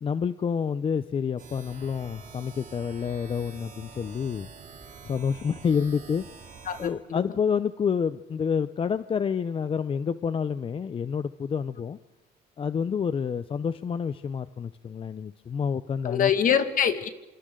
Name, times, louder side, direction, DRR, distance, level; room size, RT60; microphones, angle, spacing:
voice 1, 0.0-4.5 5.0-6.2 6.8-12.0 12.6-16.3, left 6 dB, 30° left, 13 dB, 0.6 m, -28 dB
sound 1, 1.4-6.9, right 5 dB, 50° right, 4.5 m, -46 dB
voice 2, 6.7-7.3 16.0-17.1, left 8 dB, 55° left, 9 dB, 2.0 m, -24 dB
27.0 x 26.0 x 3.8 m, 1.1 s
cardioid pair, 110°, 17 cm